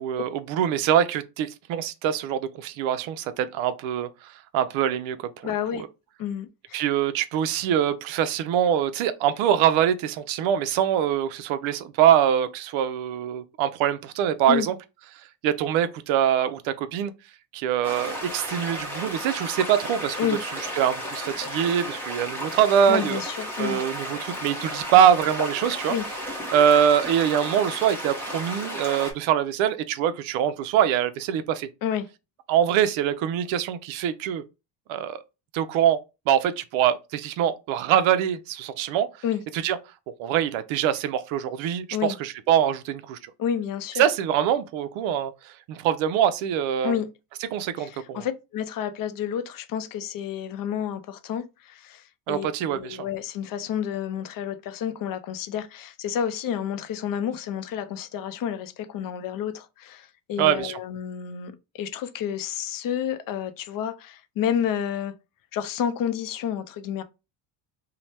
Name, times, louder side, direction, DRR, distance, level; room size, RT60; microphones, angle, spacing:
voice 1, 0.0-5.3 6.7-14.8 15.4-17.1 17.5-20.2 20.8-23.2 23.6-26.0 26.5-31.7 32.5-34.4 34.9-35.2 35.5-36.0 36.3-39.1 39.5-39.8 40.2-43.2 44.0-46.9 47.5-48.2 52.3-53.0 60.4-60.8, right 9 dB, 75° right, 0.6 m, -23 dB
voice 2, 5.4-5.8 6.2-6.8 14.5-14.7 20.2-20.4 22.9-23.8 25.9-26.0 31.8-32.1 39.2-39.4 41.9-42.2 43.4-44.0 46.8-47.1 47.8-65.1 65.5-67.0, left 9 dB, 45° left, 0.5 m, -30 dB
sound 1, 17.8-29.1, equal, 5° left, 0.7 m, -33 dB
2.8 x 2.1 x 3.1 m
cardioid pair, 130°, 47 cm